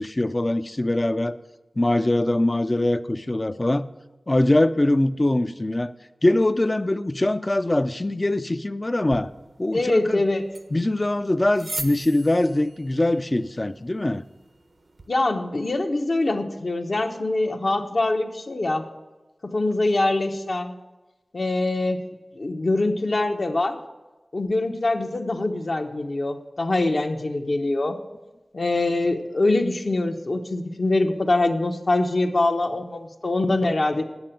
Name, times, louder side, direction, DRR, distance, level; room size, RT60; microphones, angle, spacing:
voice 1, 0.0-1.4 1.8-3.9 4.3-5.9 6.2-9.3 9.6-10.2 10.7-14.2, left 1 dB, 30° left, 12 dB, 0.5 m, -22 dB
sound 1, 9.1-15.1, right 2 dB, 65° right, 0.8 m, -41 dB
voice 2, 9.7-10.4 15.1-18.8 19.4-20.8 21.3-22.0 22.3-23.8 24.3-28.0 28.5-34.0, left 2 dB, 60° left, 4 dB, 1.1 m, -24 dB
9.6 x 6.9 x 8.9 m, 1.1 s
wide cardioid pair, 55°, 0 cm